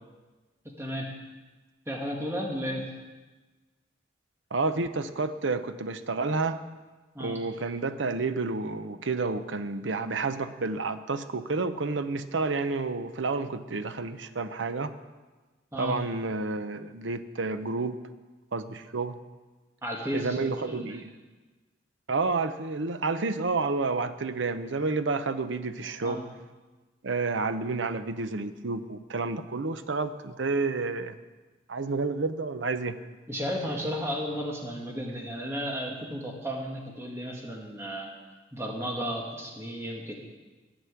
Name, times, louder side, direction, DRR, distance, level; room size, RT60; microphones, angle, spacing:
voice 1, 1.9-2.9 7.2-7.4 15.7-16.0 19.8-21.0 26.0-26.3 33.3-38.1 38.5-40.1, equal, 15° right, 0 dB, 1.8 m, -33 dB
voice 2, 4.5-6.6 7.2-14.9 15.8-18.0 18.5-19.2 20.1-21.1 22.1-26.2 27.0-31.1 31.7-33.0, right 3 dB, 75° right, 11 dB, 0.7 m, -30 dB
12.5 x 6.1 x 9.5 m, 1.3 s
head